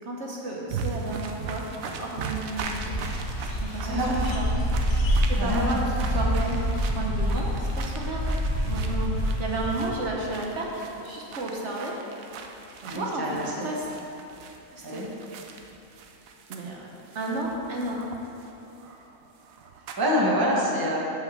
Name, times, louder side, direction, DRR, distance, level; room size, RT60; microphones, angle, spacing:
voice 1, 0.0-2.9 3.6-4.5 4.7-4.9 5.2-5.8 6.1-8.2 8.7-11.9 12.8-13.3 13.6-13.8 14.7-15.0 16.5-16.9 17.1-18.0, right 2 dB, 60° right, -2 dB, 1.1 m, -32 dB
sound 1, 0.7-20.1, right 5 dB, 80° right, 1.1 m, -40 dB
sound 2, 2.6-9.8, equal, 60° left, 1.4 m, -27 dB
voice 2, 3.8-4.3 5.4-5.6 12.9-13.7 14.8-15.1 20.0-21.0, equal, 20° right, -3 dB, 1.0 m, -26 dB
5.9 x 5.7 x 7.0 m, 3.0 s
omnidirectional pair, 1.4 m